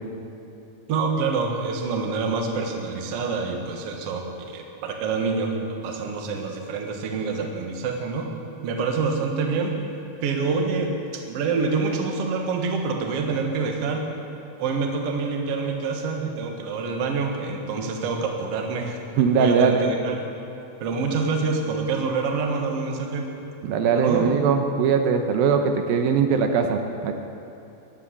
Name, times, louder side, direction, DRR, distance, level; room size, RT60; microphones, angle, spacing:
voice 1, 0.9-8.3 8.6-9.8 10.2-14.1 14.6-19.0 19.3-20.2 20.8-23.3 24.0-24.3, right 4 dB, 55° right, 2 dB, 2.0 m, -26 dB
voice 2, 19.2-19.8 23.6-27.1, right 6 dB, 80° right, 5 dB, 2.6 m, -21 dB
13.5 x 10.5 x 8.3 m, 2.9 s
omnidirectional pair, 4.2 m